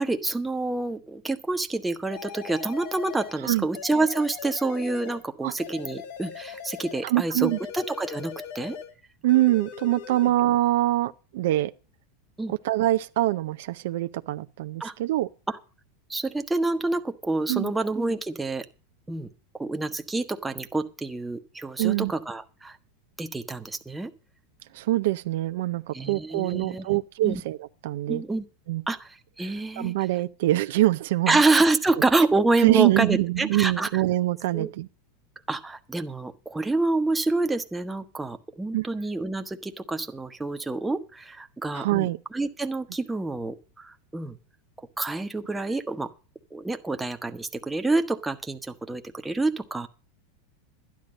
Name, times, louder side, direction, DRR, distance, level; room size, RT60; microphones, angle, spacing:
voice 1, 0.0-8.8 12.4-12.5 14.8-14.9 15.5-15.6 16.1-18.6 19.1-19.3 19.6-22.8 23.2-24.1 25.9-26.8 27.2-27.4 28.1-28.4 28.9-29.9 31.3-33.9 34.5-34.7 35.5-44.4 45.0-46.1 46.5-49.9, right 2 dB, 10° right, 1.0 m, -27 dB
sound 1, 2.1-3.4 3.7-5.3 5.6-7.1 7.4-9.0 9.3-10.3, left 7 dB, 60° left, 1.6 m, -40 dB
voice 2, 7.0-7.6 9.2-11.7 12.5-15.3 17.5-17.7 21.8-22.1 24.7-28.2 28.7-28.8 29.4-29.5 29.8-31.4 32.6-34.9 38.7-38.9 41.7-42.2, right 16 dB, 70° right, 0.5 m, -24 dB
11.5 x 10.5 x 5.2 m
supercardioid pair, 120°, 0 cm